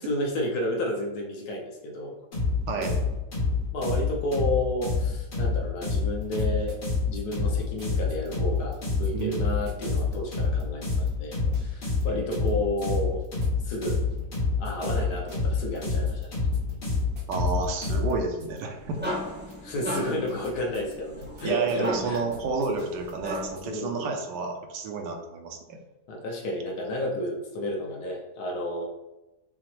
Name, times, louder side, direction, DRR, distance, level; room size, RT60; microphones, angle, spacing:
voice 1, 0.0-2.2 2.7-3.1 3.7-6.8 7.1-13.2 13.6-14.0 14.6-16.4 19.6-22.2 23.6-24.1 26.1-28.8, left 1 dB, 70° left, 0 dB, 1.1 m, -31 dB
sound 1, 2.3-18.2, left 4 dB, 85° left, 2.5 m, -27 dB
sound 2, 6.2-6.9 7.1-8.8 9.0-10.6 10.9-11.1 11.4-12.1 12.3-12.5 12.8-14.4 14.6-15.8 16.1-16.3 16.5-18.1 18.4-18.6 18.9-19.5 19.8-21.0 21.2-21.9 22.1-23.6, right 1 dB, 60° right, 1.0 m, -48 dB
voice 2, 17.3-19.0 21.4-25.8, right 4 dB, 75° right, 3 dB, 1.2 m, -30 dB
sound 3, 18.5-23.7, equal, 10° right, 0.7 m, -36 dB
5.6 x 2.0 x 3.0 m, 1.0 s
omnidirectional pair, 1.9 m